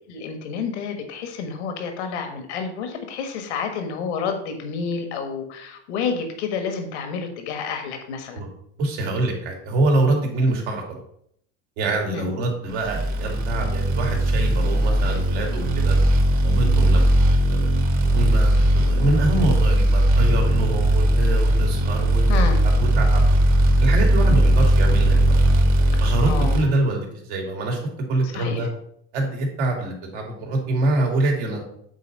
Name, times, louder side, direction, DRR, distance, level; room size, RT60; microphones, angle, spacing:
voice 1, 0.1-8.4 12.1-12.3 22.3-22.6 26.2-26.6 28.2-28.6, left 5 dB, 85° left, 6 dB, 1.5 m, -29 dB
voice 2, 8.8-11.0 11.8-16.0 16.4-17.1 17.5-17.8 18.1-22.2 22.6-23.2 23.8-25.4 26.0-27.8 28.1-28.7 29.1-31.6, right 2 dB, 80° right, 0 dB, 2.7 m, -25 dB
sound 1, 12.8-26.6, right 1 dB, 55° right, 1.7 m, -18 dB
8.3 x 4.1 x 5.3 m, 0.69 s
supercardioid pair, 115°, 33 cm